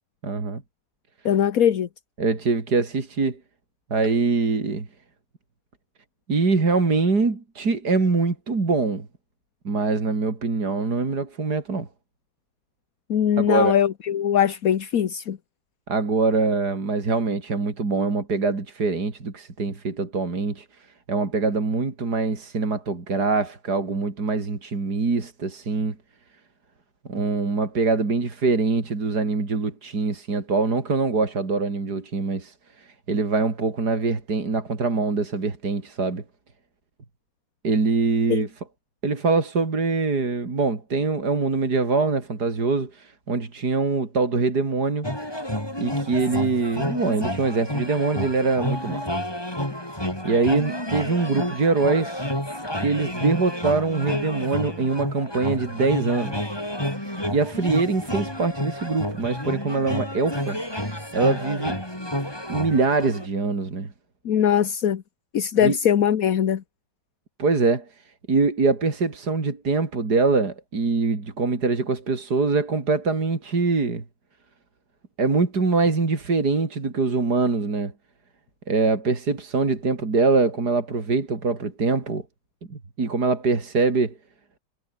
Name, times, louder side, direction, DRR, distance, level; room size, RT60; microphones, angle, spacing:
voice 1, 0.2-0.6 2.2-3.4 3.9-4.9 6.3-9.1 9.6-11.9 13.4-13.7 15.9-20.7 21.1-26.0 27.1-36.2 37.6-38.5 39.0-45.1 45.8-49.0 50.2-52.3 52.8-56.6 57.3-61.8 62.5-63.9 65.6-65.8 67.4-67.9 68.3-74.0 75.2-77.9 78.7-82.2 82.7-84.1, right 4 dB, 65° right, 4.0 m, -23 dB
voice 2, 1.2-1.9 13.1-15.4 38.3-38.5 64.2-65.0 65.3-66.6, left 9 dB, 60° left, 1.5 m, -21 dB
sound 1, 45.0-63.3, left 1 dB, 15° left, 6.6 m, -30 dB
omnidirectional pair, 1.8 m